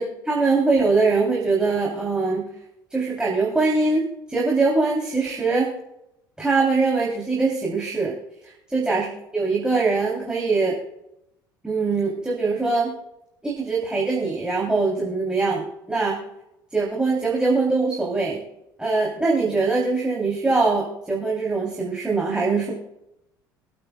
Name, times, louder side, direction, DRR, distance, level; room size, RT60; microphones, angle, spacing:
voice 1, 0.0-2.5 2.9-4.0 4.3-5.7 6.4-8.1 8.4-9.1 9.3-10.7 11.6-12.9 13.4-16.2 16.7-18.4 18.8-22.7, right 3 dB, 5° right, -3 dB, 2.9 m, -22 dB
26.5 x 8.9 x 2.2 m, 0.86 s
figure-of-eight pair, 60°, 11 cm